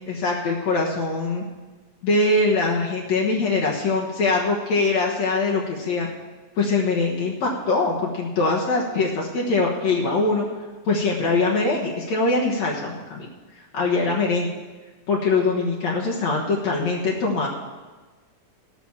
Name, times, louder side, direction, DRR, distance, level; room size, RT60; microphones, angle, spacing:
voice 1, 0.1-1.4 2.0-6.1 6.6-10.5 10.9-13.3 13.7-14.5 15.1-17.5, left 3 dB, 65° left, -3 dB, 2.5 m, -22 dB
15.0 x 6.2 x 7.1 m, 1.3 s
omnidirectional pair, 3.6 m